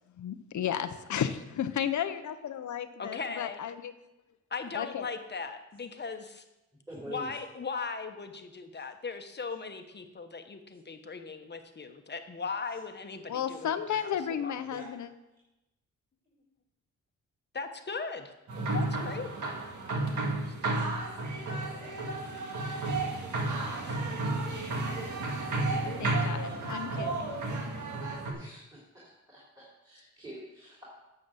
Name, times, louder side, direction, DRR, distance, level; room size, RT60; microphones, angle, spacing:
voice 1, 0.2-3.9 4.7-5.1 13.3-15.1 25.8-27.3, left 9 dB, 70° left, 11 dB, 0.7 m, -33 dB
voice 2, 3.0-3.6 4.5-6.4 7.1-13.8 14.4-14.6 17.5-18.3 18.7-19.3 23.8-23.9, left 4 dB, 35° left, 7 dB, 1.0 m, -38 dB
voice 3, 6.9-7.3 13.9-14.0 14.7-14.8 16.3-16.4 28.3-28.8 29.3-30.8, equal, 15° right, -6 dB, 3.1 m, -45 dB
sound 1, 18.5-28.3, right 2 dB, 70° right, 1.8 m, -32 dB
9.3 x 7.1 x 6.2 m, 0.98 s
cardioid pair, 95°, 31 cm